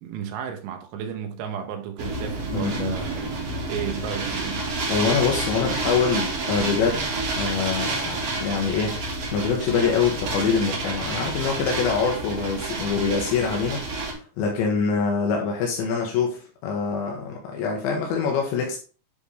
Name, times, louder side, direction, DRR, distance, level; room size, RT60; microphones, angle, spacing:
voice 1, 0.0-4.7, right 9 dB, 80° right, 3.3 m, -33 dB
sound 1, 2.0-14.1, right 2 dB, 50° right, 2.0 m, -29 dB
voice 2, 2.5-3.0 4.9-7.1 7.4-9.0 9.3-18.8, left 5 dB, 80° left, 3.4 m, -25 dB
10.0 x 4.3 x 3.3 m
omnidirectional pair, 5.3 m